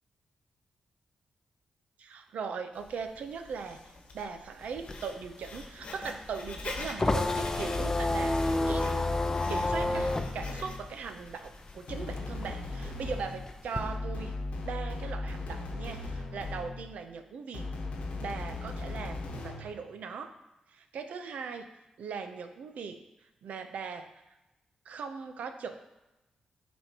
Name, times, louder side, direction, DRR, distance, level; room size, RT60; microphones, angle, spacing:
voice 1, 2.0-8.9 9.5-14.4 14.6-17.7 18.2-20.3 20.7-21.7 22.0-23.0 23.4-24.1 24.9-25.8, right 5 dB, 85° right, 7 dB, 0.6 m, -39 dB
Writing, 2.7-12.0, left 3 dB, 70° left, 1.0 m, -45 dB
sound 1, 4.6-11.7 12.0-13.8, left 2 dB, 25° left, 0.5 m, -30 dB
sound 2, 7.7-11.0 11.9-17.0 17.5-19.7, left 2 dB, 90° left, 1.0 m, -37 dB
10.0 x 4.3 x 2.8 m, 0.99 s
cardioid pair, 90°, 2 cm